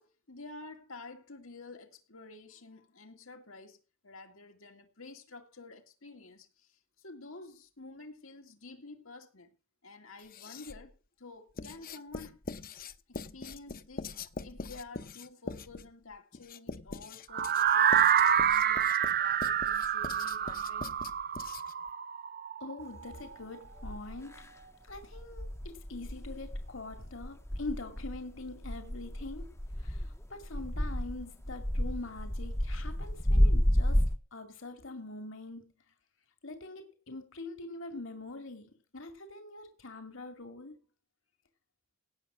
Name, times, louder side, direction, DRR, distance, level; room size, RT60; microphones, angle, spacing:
voice 1, 0.0-9.5 9.8-12.4 13.1-21.0, left 3 dB, 85° left, 2.4 m, -50 dB
Writing, 10.2-10.9 11.6-21.9, left 3 dB, 45° left, 0.8 m, -43 dB
sound 1, 17.3-23.3, right 9 dB, 45° right, 0.6 m, -27 dB
voice 2, 22.6-24.5 24.8-29.5 29.8-35.8 36.4-40.8, left 2 dB, 65° left, 2.3 m, -44 dB
sound 2, 23.2-23.3 23.8-24.4 24.9-34.1, equal, 15° left, 0.7 m, -31 dB
17.5 x 6.9 x 6.2 m
head